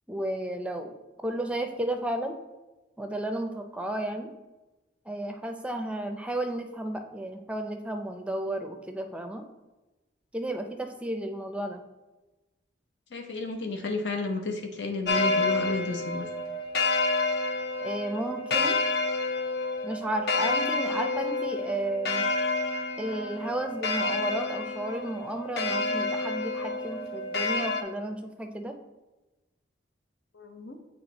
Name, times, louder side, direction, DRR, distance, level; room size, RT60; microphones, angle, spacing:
voice 1, 0.1-1.0 1.2-2.3 3.0-4.3 5.1-9.4 10.3-11.8 17.8-18.8 19.8-22.3 23.0-28.8, right 1 dB, 5° right, 4 dB, 0.5 m, -33 dB
voice 2, 13.1-16.3 30.3-30.8, left 3 dB, 80° left, 3 dB, 0.8 m, -32 dB
sound 1, 15.1-27.8, left 3 dB, 55° left, 0.5 m, -29 dB
7.9 x 3.2 x 4.0 m, 1.1 s
head